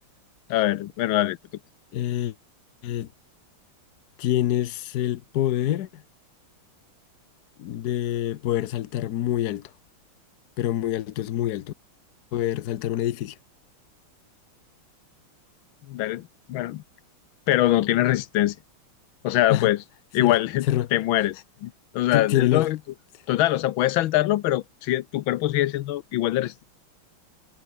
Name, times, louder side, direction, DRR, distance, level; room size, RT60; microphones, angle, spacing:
voice 1, 0.5-1.4 15.9-16.8 17.5-18.6 19.2-19.8 20.1-22.8 23.3-26.6, left 14 dB, 75° left, 1.4 m, -23 dB
voice 2, 1.9-2.3 2.8-3.1 4.2-6.0 7.6-9.7 10.6-11.7 12.3-13.4 19.5-19.7 20.2-20.4 20.7-20.9 22.1-22.7, left 12 dB, 60° left, 1.2 m, -26 dB
omnidirectional pair, 2.3 m